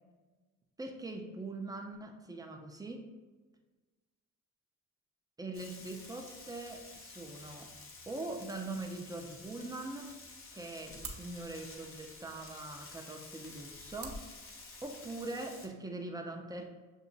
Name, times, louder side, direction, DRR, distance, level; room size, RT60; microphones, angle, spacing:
voice 1, 0.8-3.1 5.4-7.7 8.1-10.2 10.5-14.2 14.8-16.7, right 2 dB, 10° right, 2 dB, 0.6 m, -42 dB
Frying (food), 5.5-15.7, left 3 dB, 45° left, 0.8 m, -51 dB
sound 1, 10.2-15.2, right 3 dB, 40° right, 0.8 m, -51 dB
7.1 x 2.7 x 2.6 m, 1.3 s
cardioid pair, 90°, 30 cm